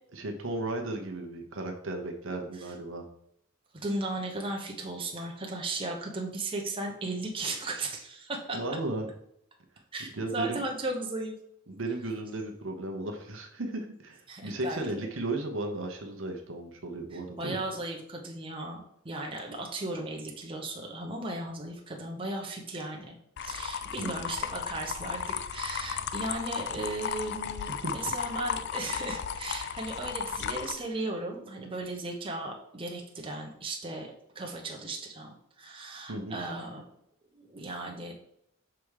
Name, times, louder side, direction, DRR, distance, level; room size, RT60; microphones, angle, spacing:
voice 1, 0.1-3.1 8.5-9.1 10.1-10.6 11.7-17.6 24.0-24.3 27.8-27.9 36.1-36.4, right 2 dB, 70° right, 2 dB, 1.0 m, -35 dB
voice 2, 3.7-8.6 9.9-11.4 14.3-14.9 17.1-36.8 37.3-38.1, right 2 dB, 25° right, 0 dB, 0.9 m, -36 dB
sound 1, 23.4-30.7, left 7 dB, 55° left, 0.4 m, -35 dB
5.9 x 3.6 x 4.8 m, 0.74 s
head